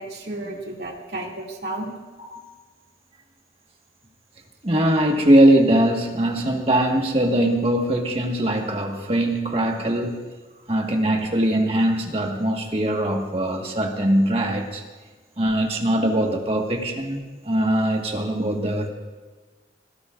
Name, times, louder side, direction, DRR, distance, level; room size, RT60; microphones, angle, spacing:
voice 1, 0.0-1.9 10.6-10.7, right 2 dB, 60° right, -2 dB, 2.7 m, -33 dB
voice 2, 4.6-10.3 10.7-14.8 15.4-18.9, right 1 dB, 30° right, 1 dB, 1.7 m, -21 dB
25.5 x 17.0 x 2.6 m, 1.3 s
head